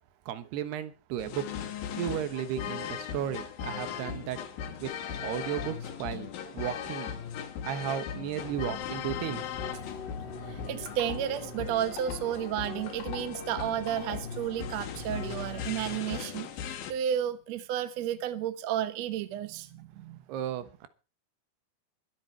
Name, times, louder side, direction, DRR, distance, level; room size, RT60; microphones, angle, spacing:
voice 1, 0.3-1.4 2.0-4.4 4.8-4.9 5.2-7.1 7.6-9.4 20.3-20.9, right 10 dB, 85° right, 3.3 m, -34 dB
sound 1, 1.2-16.9, left 8 dB, 70° left, 3.1 m, -38 dB
sound 2, 8.4-16.0, left 3 dB, 35° left, 2.6 m, -44 dB
voice 2, 10.4-20.2, right 10 dB, 65° right, 1.7 m, -32 dB
22.5 x 8.1 x 4.5 m
omnidirectional pair, 4.6 m